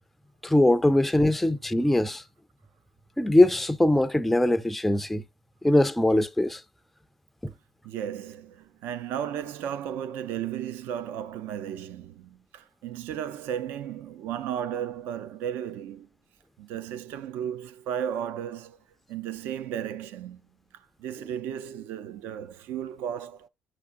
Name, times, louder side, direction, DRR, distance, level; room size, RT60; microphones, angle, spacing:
voice 1, 0.4-2.2 3.2-5.2 5.6-6.6 7.4-7.5, left 1 dB, 5° left, 0.4 m, -21 dB
voice 2, 7.8-16.1 16.6-18.8 19.1-20.4 21.0-23.5, right 9 dB, 80° right, 0.6 m, -34 dB
8.5 x 6.1 x 2.5 m
cardioid pair, 135°, 3 cm